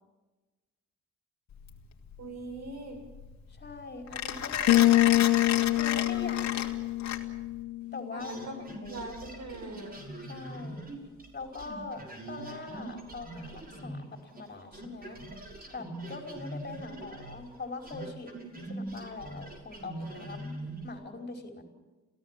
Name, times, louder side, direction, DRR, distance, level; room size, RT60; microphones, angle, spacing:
Mechanisms, 1.5-7.6, left 9 dB, 65° left, 2.8 m, -33 dB
voice 1, 2.2-3.0 8.1-10.0, right 2 dB, 65° right, 5 dB, 7.7 m, -41 dB
voice 2, 3.5-6.6 7.9-8.3 8.8-9.0 10.2-10.8 11.3-15.2 15.7-18.3 18.7-20.6 20.8-21.6, left 3 dB, 30° left, 2 dB, 4.8 m, -42 dB
sound 1, 4.7-8.4, left 16 dB, 85° left, 0.7 m, -25 dB
sound 2, 8.2-14.5 14.7-21.0, right 1 dB, 30° right, 6.2 m, -43 dB
29.0 x 17.0 x 7.6 m, 1.2 s
cardioid pair, 90°, 30 cm